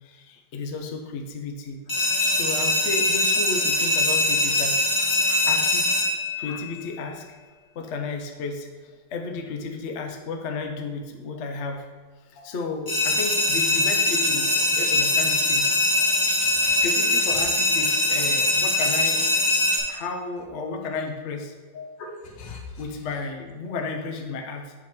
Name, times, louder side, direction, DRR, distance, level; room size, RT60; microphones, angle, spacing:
voice 1, 0.0-1.8 2.3-4.8 5.5-6.1 6.4-7.2 7.7-11.9 12.2-15.7 16.8-19.2 19.9-21.5 22.7-24.7, left 4 dB, 55° left, 3 dB, 0.8 m, -33 dB
sound 1, 1.9-6.8 12.9-19.8, left 2 dB, 15° left, 1.0 m, -22 dB
voice 2, 16.4-16.8 21.7-22.8, left 3 dB, 80° left, 1 dB, 1.8 m, -41 dB
8.2 x 3.0 x 6.0 m, 1.3 s
omnidirectional pair, 2.0 m